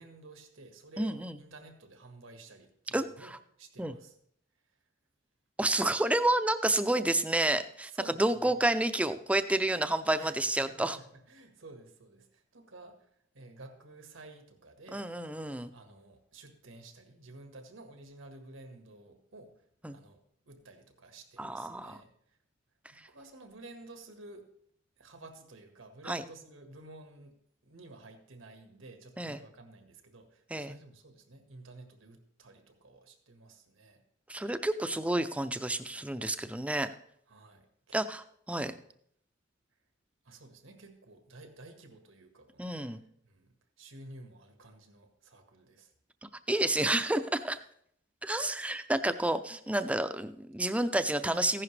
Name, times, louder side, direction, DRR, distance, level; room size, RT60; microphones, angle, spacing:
voice 1, 0.0-3.3 3.6-4.2 7.9-8.6 10.2-13.1 13.3-15.1 15.5-19.6 19.9-20.2 20.4-22.4 22.9-24.5 25.0-27.3 27.6-34.0 37.3-38.0 38.5-38.8 40.2-45.9, right 2 dB, 90° right, 5 dB, 1.6 m, -52 dB
voice 2, 1.0-1.4 2.9-3.4 3.8-3.9 5.6-11.0 14.9-15.7 19.8-19.9 21.4-22.0 26.1-26.2 29.2-29.4 30.5-30.7 34.3-36.9 37.9-38.7 42.6-43.0 46.5-47.6 48.2-51.6, right 1 dB, 5° right, 10 dB, 0.5 m, -30 dB
15.0 x 11.0 x 3.3 m, 0.67 s
head